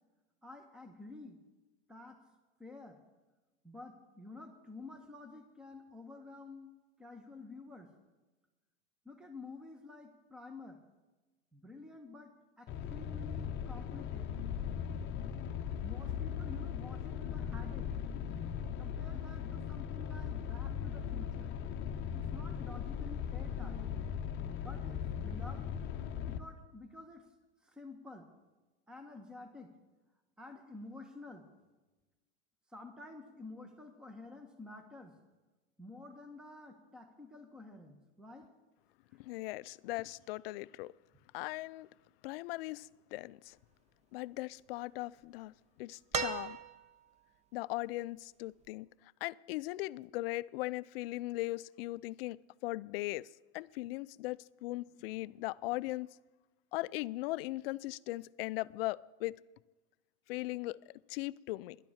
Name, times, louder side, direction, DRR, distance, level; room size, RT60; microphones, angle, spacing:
voice 1, 0.4-1.4 1.9-2.2 2.6-3.0 3.6-6.7 7.0-8.0 9.0-10.8 11.5-14.4 15.8-17.9 18.8-21.5 22.1-23.9 24.6-25.6 26.3-27.3 27.6-28.3 28.9-29.7 30.4-31.5 32.7-35.2 35.8-38.5 39.1-39.2, left 3 dB, ahead, 1.1 m, -50 dB
sound 1, 12.7-26.4, left 8 dB, 30° left, 0.8 m, -38 dB
voice 2, 39.2-40.9 41.3-41.9 42.2-43.6 44.1-46.6 47.5-48.9 49.2-53.3 53.5-56.2 56.7-59.4 60.3-61.8, left 19 dB, 55° left, 0.5 m, -39 dB
sound 2, 46.1-47.1 48.7-48.8, right 5 dB, 20° right, 0.7 m, -37 dB
10.5 x 10.5 x 7.2 m
hypercardioid pair, 125°, 35 cm